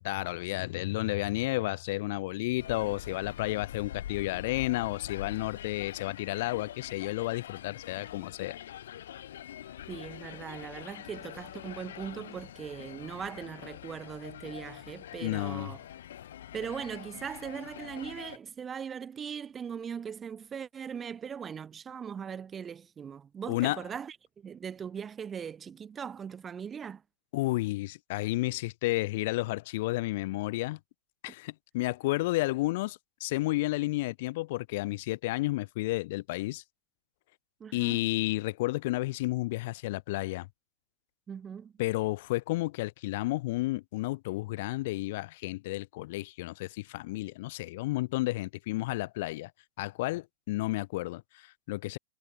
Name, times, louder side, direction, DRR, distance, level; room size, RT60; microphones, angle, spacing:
voice 1, 0.0-8.6 15.2-15.7 23.5-23.8 27.3-30.8 31.2-36.6 37.7-40.5 41.8-49.5 49.8-52.0, left 19 dB, 55° left, 0.6 m, -31 dB
sound 1, 2.6-18.4, left 11 dB, 70° left, 1.1 m, -44 dB
voice 2, 9.9-15.8 16.5-27.0 37.6-38.0 41.3-41.7, right 7 dB, 20° right, 0.8 m, -40 dB
hypercardioid pair, 135°, 0 cm